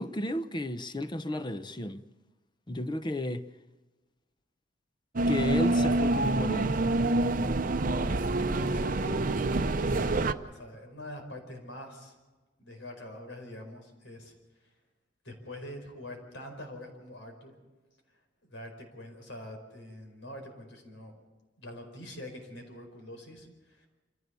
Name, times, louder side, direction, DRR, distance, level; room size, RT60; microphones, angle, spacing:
voice 1, 0.0-2.0 2.7-3.5 5.3-6.8, left 1 dB, 25° left, 0.8 m, -33 dB
sound 1, 5.2-10.3, right 2 dB, 45° right, 0.7 m, -27 dB
voice 2, 8.5-9.3 9.8-12.1 12.6-14.3 15.2-17.5 18.5-21.2 21.6-23.9, left 1 dB, 85° left, 4.9 m, -44 dB
26.5 x 15.5 x 6.9 m
head